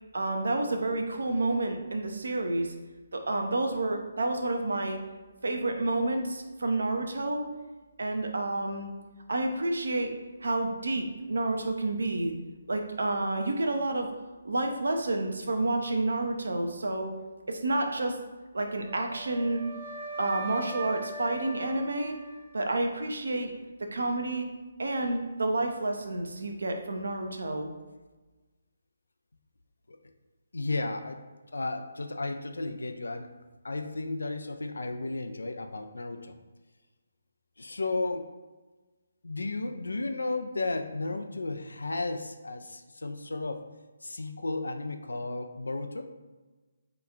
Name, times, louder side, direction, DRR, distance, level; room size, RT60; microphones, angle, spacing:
voice 1, 0.1-2.7 3.1-5.0 5.4-7.5 8.0-8.9 9.3-10.1 10.4-12.3 12.7-14.1 14.4-17.1 17.5-18.2 18.5-19.6 20.2-22.1 22.5-23.5 23.9-24.5 24.8-27.7, right 2 dB, 75° right, 4 dB, 0.5 m, -29 dB
Wind instrument woodwind instrument, 18.9-23.0, right 3 dB, 35° right, 0.8 m, -40 dB
voice 2, 30.5-31.2 31.5-33.3 33.6-36.4 37.6-38.3 39.2-43.6 44.0-46.0, left 2 dB, 80° left, 7 dB, 0.3 m, -33 dB
2.9 x 2.3 x 3.7 m, 1.2 s
figure-of-eight pair, 150°, 0 cm